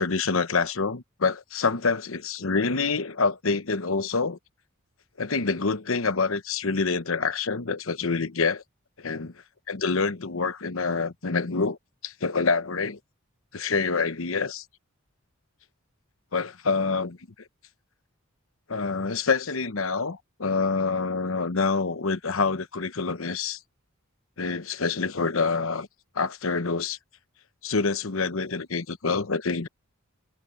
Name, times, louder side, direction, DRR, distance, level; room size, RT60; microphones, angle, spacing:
voice 1, 0.0-4.4 5.2-8.6 9.0-9.3 9.7-11.8 12.0-13.0 13.5-14.6 16.3-17.2 18.7-23.6 24.4-25.9 26.1-27.0 27.6-29.7, left 4 dB, 70° left, 1.0 m, -26 dB
head